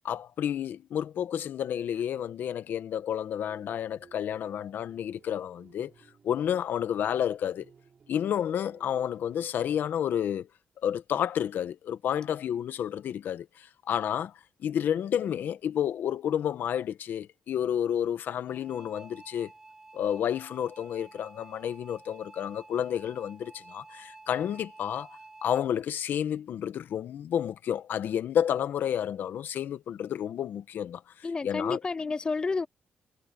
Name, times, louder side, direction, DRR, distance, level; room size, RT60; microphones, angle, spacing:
voice 1, 0.0-5.9 6.2-7.6 8.1-10.5 10.8-14.3 14.6-19.5 19.9-31.8, left 9 dB, 75° left, 1.2 m, -30 dB
sound 1, 3.5-9.4, right 6 dB, 45° right, 6.1 m, -60 dB
sound 2, 18.5-25.7, right 2 dB, 15° right, 6.1 m, -51 dB
voice 2, 31.2-32.7, left 4 dB, 25° left, 0.4 m, -30 dB
cardioid pair, 120°, 3 cm